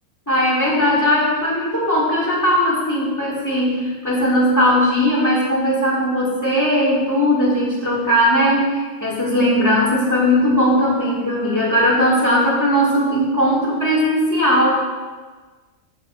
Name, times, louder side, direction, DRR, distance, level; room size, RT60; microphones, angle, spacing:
voice 1, 0.3-14.7, equal, 15° left, -7 dB, 2.5 m, -18 dB
14.5 x 6.7 x 2.6 m, 1.3 s
omnidirectional pair, 1.4 m